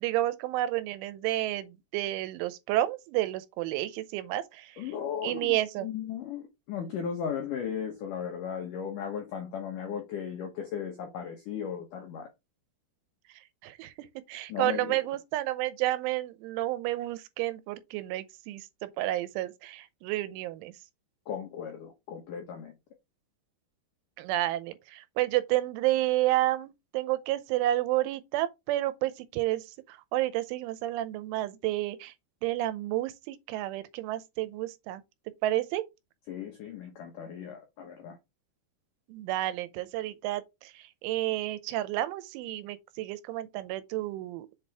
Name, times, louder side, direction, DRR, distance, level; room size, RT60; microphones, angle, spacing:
voice 1, 0.0-4.8 5.2-5.9 13.6-13.9 14.3-20.7 24.2-32.1 32.4-35.0 35.4-35.8 39.1-44.5, right 15 dB, 90° right, 3.2 m, -30 dB
voice 2, 4.8-12.3 14.5-15.0 21.3-22.7 36.3-38.2, left 8 dB, 80° left, 1.9 m, -36 dB
7.4 x 4.3 x 3.5 m
omnidirectional pair, 5.4 m